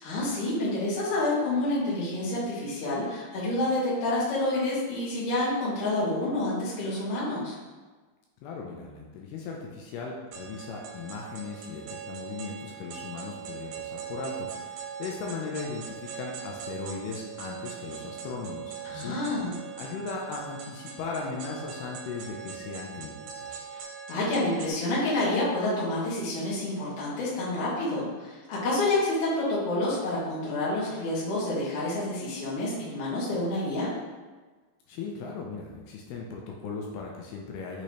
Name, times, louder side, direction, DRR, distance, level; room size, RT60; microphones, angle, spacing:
voice 1, 0.0-7.5 18.8-19.5 23.7-23.8 24.1-33.9, left 2 dB, 55° left, -9 dB, 1.7 m, -28 dB
voice 2, 8.4-19.2 19.8-23.6 34.9-37.8, left 4 dB, 85° left, -1 dB, 2.4 m, -38 dB
sound 1, 10.3-24.7, right 8 dB, 85° right, 2.5 m, -41 dB
6.2 x 2.8 x 3.1 m, 1.3 s
omnidirectional pair, 4.4 m